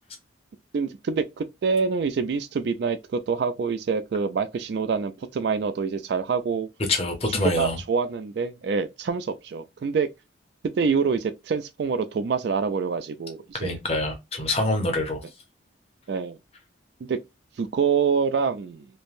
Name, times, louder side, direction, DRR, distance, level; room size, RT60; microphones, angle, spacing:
voice 1, 0.7-6.7 7.4-10.1 10.7-13.8 16.1-16.4 17.0-17.2 17.6-18.9, right 5 dB, 55° right, 0.3 m, -26 dB
voice 2, 6.9-7.8 13.6-15.2, left 2 dB, 30° left, 0.7 m, -25 dB
3.1 x 2.1 x 2.4 m
head